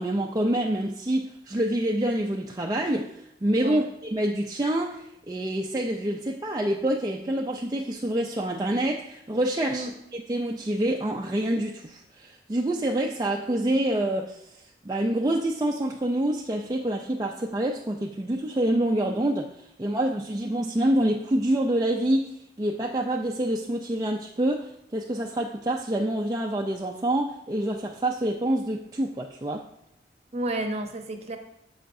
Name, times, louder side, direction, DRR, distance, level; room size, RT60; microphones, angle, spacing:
voice 1, 0.0-9.9 10.1-29.6, right 1 dB, 20° right, 0 dB, 0.4 m, -27 dB
voice 2, 30.3-31.4, right 1 dB, 35° right, 6 dB, 0.8 m, -31 dB
10.0 x 6.9 x 2.6 m, 0.81 s
head